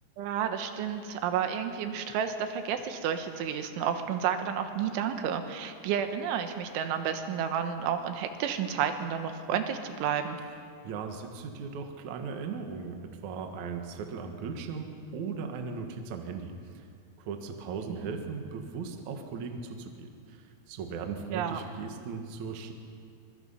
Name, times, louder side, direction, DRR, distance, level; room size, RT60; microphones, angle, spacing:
voice 1, 0.2-10.4 17.9-18.0 21.3-21.6, right 8 dB, 80° right, 7 dB, 3.5 m, -31 dB
voice 2, 10.8-16.9 17.2-22.8, right 5 dB, 60° right, 4 dB, 2.0 m, -38 dB
25.0 x 22.0 x 5.6 m, 2.3 s
omnidirectional pair, 5.5 m